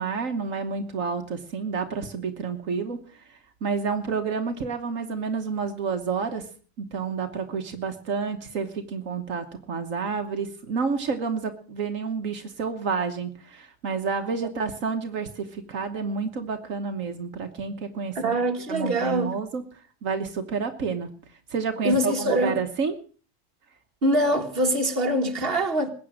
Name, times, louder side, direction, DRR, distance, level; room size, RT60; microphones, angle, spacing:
voice 1, 0.0-6.4 6.8-18.4 18.7-19.6 20.0-21.1 21.5-23.0, right 5 dB, 80° right, 1.6 m, -29 dB
voice 2, 18.2-19.3 21.8-22.6 24.0-25.9, right 1 dB, 45° right, 2.0 m, -24 dB
21.0 x 8.5 x 6.3 m
omnidirectional pair, 1.3 m